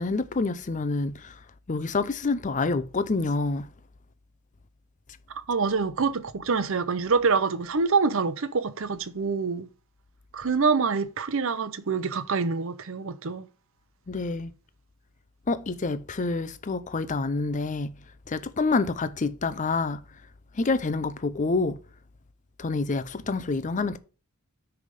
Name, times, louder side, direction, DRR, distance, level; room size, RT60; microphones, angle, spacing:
voice 1, 0.0-1.4 1.7-3.7 14.1-14.5 15.5-17.9 18.3-20.0 20.5-21.8 22.6-24.0, left 3 dB, 35° left, 0.6 m, -27 dB
voice 2, 5.5-9.7 10.3-13.5, right 4 dB, 65° right, 0.7 m, -26 dB
9.8 x 3.5 x 5.2 m
head